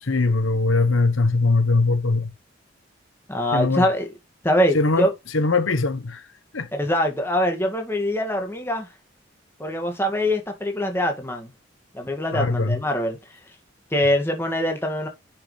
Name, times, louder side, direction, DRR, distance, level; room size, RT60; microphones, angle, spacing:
voice 1, 0.0-2.3 3.5-3.8 4.7-5.1 5.3-6.3 6.5-6.7 12.3-12.8, left 3 dB, 85° left, 1.1 m, -21 dB
voice 2, 3.3-4.1 4.4-5.1 6.7-8.9 9.6-11.5 11.9-13.2 13.9-15.1, equal, 10° left, 2.0 m, -23 dB
10.0 x 5.9 x 3.3 m
head